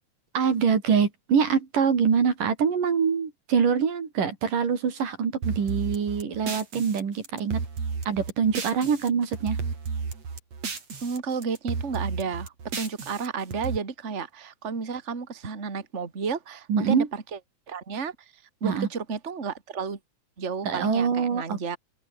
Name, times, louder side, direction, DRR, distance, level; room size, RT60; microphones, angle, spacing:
voice 1, 0.3-7.6 8.1-9.6 16.7-17.1 18.6-18.9 20.6-21.6, right 6 dB, 85° right, 5.2 m, -24 dB
sound 1, 5.4-9.1 9.3-11.2 11.4-13.8, right 5 dB, 55° right, 5.3 m, -33 dB
voice 2, 11.0-17.4 17.7-20.0 20.4-21.8, right 5 dB, 25° right, 2.5 m, -32 dB
open air
omnidirectional pair, 3.7 m